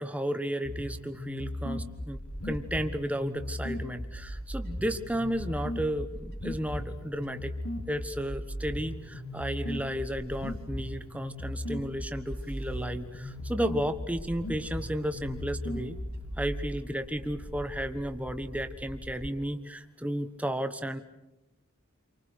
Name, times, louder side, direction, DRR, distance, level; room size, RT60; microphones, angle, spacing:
voice 1, 0.0-2.2 2.4-7.5 7.9-16.0 16.4-21.0, equal, 5° right, 8 dB, 1.2 m, -33 dB
sound 1, 0.6-16.6, left 1 dB, 85° left, 3.2 m, -37 dB
Bird / Wind, 2.3-19.3, equal, 45° right, 2.4 m, -49 dB
30.0 x 24.5 x 6.6 m, 0.97 s
head